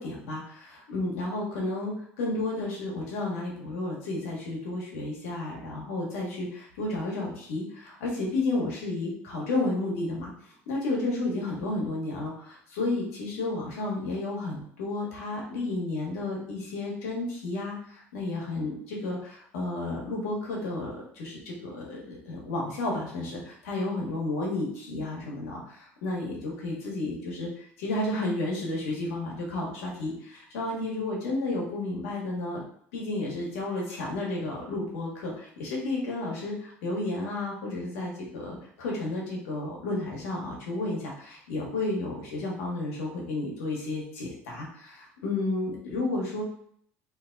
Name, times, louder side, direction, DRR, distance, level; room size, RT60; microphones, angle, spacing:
voice 1, 0.0-10.3 10.7-27.5 27.8-32.6 32.9-46.4, left 2 dB, 80° left, -2 dB, 1.2 m, -32 dB
2.9 x 2.1 x 3.8 m, 0.64 s
hypercardioid pair, 80°, 7 cm